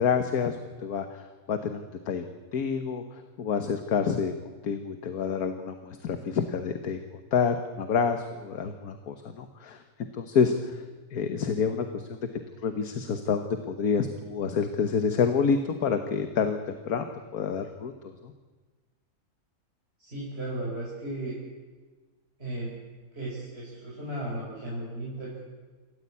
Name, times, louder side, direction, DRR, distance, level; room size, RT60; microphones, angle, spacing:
voice 1, 0.0-2.2 2.5-4.3 4.6-7.0 7.3-9.8 10.1-10.8 11.1-12.2 12.6-17.0 17.3-18.3, left 6 dB, 70° left, 7 dB, 1.7 m, -28 dB
voice 2, 20.0-21.4 22.4-22.7 23.1-25.4, right 1 dB, 40° right, -6 dB, 5.3 m, -35 dB
27.5 x 14.0 x 8.5 m, 1.4 s
omnidirectional pair, 1.7 m